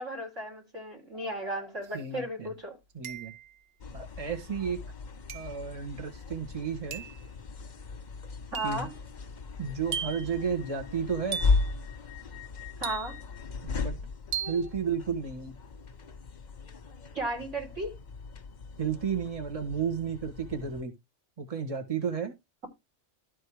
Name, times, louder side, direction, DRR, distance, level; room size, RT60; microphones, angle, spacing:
voice 1, 0.0-2.8 8.5-8.9 12.8-13.2 17.1-18.0, right 1 dB, 75° right, 4.7 m, -35 dB
voice 2, 1.9-2.5 2.9-3.3 3.9-4.8 5.3-7.0 8.6-8.9 9.6-11.4 13.6-14.0 14.5-15.6 18.8-20.9 21.4-22.3, right 6 dB, 30° right, 1.7 m, -32 dB
sound 1, 1.9-2.0 3.0-3.6 5.3-5.6 6.9-7.2 8.5-8.9 9.9-10.3 11.3-11.7 12.8-13.4 14.3-14.7, right 7 dB, 55° right, 0.9 m, -36 dB
sound 2, 3.8-20.8, left 4 dB, 40° left, 1.0 m, -36 dB
13.0 x 4.4 x 4.9 m
omnidirectional pair, 1.3 m